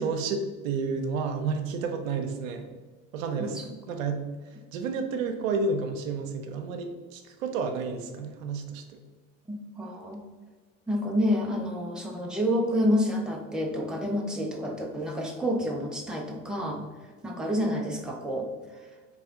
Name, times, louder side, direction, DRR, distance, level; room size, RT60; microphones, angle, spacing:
voice 1, 0.0-2.7 3.1-3.6 3.9-4.2 4.7-8.8, right 4 dB, 80° right, 6 dB, 0.7 m, -30 dB
voice 2, 3.4-3.7 9.5-10.2 10.9-16.8 17.2-18.5, equal, ahead, 0 dB, 0.8 m, -28 dB
4.1 x 3.3 x 3.6 m, 1.4 s
hypercardioid pair, 80°, 39 cm